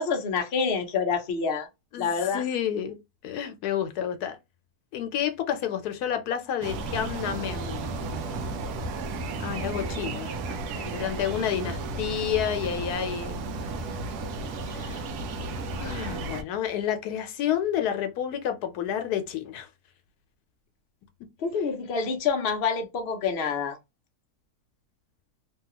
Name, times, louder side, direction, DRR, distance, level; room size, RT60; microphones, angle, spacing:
voice 1, 0.0-1.7 2.0-2.4 21.4-23.8, left 5 dB, 50° left, 0.7 m, -27 dB
voice 2, 1.9-3.0 3.2-4.4 4.9-7.9 9.4-13.4 14.7-15.1 15.7-19.7, left 9 dB, 85° left, 1.2 m, -30 dB
sound 1, 6.6-16.4, right 3 dB, 85° right, 1.2 m, -33 dB
3.1 x 2.3 x 2.8 m
omnidirectional pair, 1.6 m